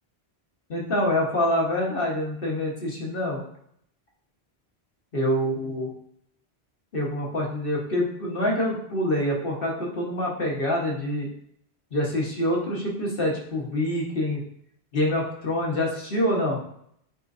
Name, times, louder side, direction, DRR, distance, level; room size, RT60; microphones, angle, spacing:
voice 1, 0.7-3.4 5.1-5.9 6.9-11.3 11.9-14.4 14.9-16.6, left 1 dB, 60° left, -3 dB, 1.7 m, -26 dB
8.9 x 3.9 x 2.7 m, 0.68 s
omnidirectional pair, 1.1 m